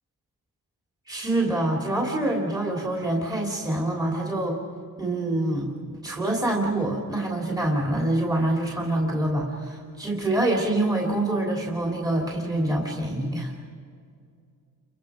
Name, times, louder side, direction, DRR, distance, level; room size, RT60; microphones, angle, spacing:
voice 1, 1.1-4.6 5.0-13.5, right 1 dB, 10° right, -2 dB, 3.1 m, -26 dB
30.0 x 25.0 x 5.1 m, 2.3 s
cardioid pair, 115°, 38 cm